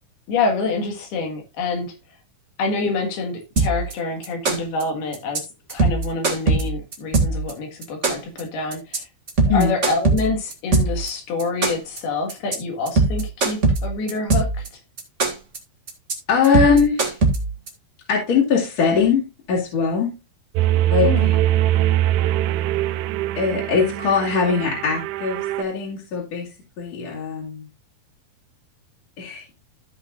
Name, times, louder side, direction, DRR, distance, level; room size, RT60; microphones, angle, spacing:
voice 1, 0.3-1.9 2.6-5.4 5.7-9.0 9.5-14.5 21.0-21.3, left 3 dB, 80° left, 3 dB, 3.8 m, -26 dB
sound 1, 3.6-3.9 4.2-4.8 5.1-5.4 5.7-7.5 7.8-8.4 8.7-9.0 9.3-11.1 11.4-12.0 12.3-12.5 12.9-14.7 15.0-15.6 15.9-16.1 16.4-17.7, right 3 dB, 35° right, 1.3 m, -20 dB
voice 2, 16.3-17.2 18.1-20.1 20.9-21.4 23.4-26.5 26.8-27.7 29.2-29.4, left 5 dB, 45° left, -3 dB, 3.1 m, -21 dB
sound 2, 20.6-25.6, right 13 dB, 80° right, 2.0 m, -22 dB
15.0 x 5.7 x 2.5 m, 0.26 s
omnidirectional pair, 4.4 m